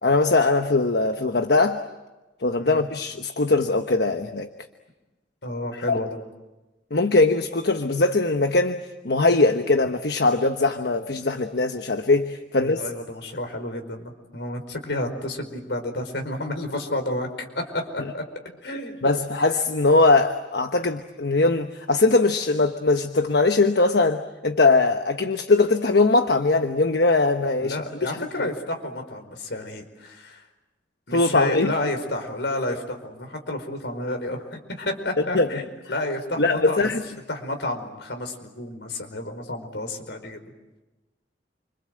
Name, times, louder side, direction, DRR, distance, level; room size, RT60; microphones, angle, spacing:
voice 1, 0.0-1.8 2.4-4.5 5.9-6.0 6.9-12.8 19.0-28.5 31.1-31.7 35.3-35.5 36.4-37.0, left 3 dB, 65° left, 7 dB, 1.2 m, -21 dB
voice 2, 5.4-6.2 12.6-18.2 18.6-19.0 27.6-30.4 31.1-36.9 37.3-40.5, left 1 dB, 80° left, 5 dB, 4.9 m, -30 dB
29.5 x 25.5 x 7.9 m, 1.1 s
head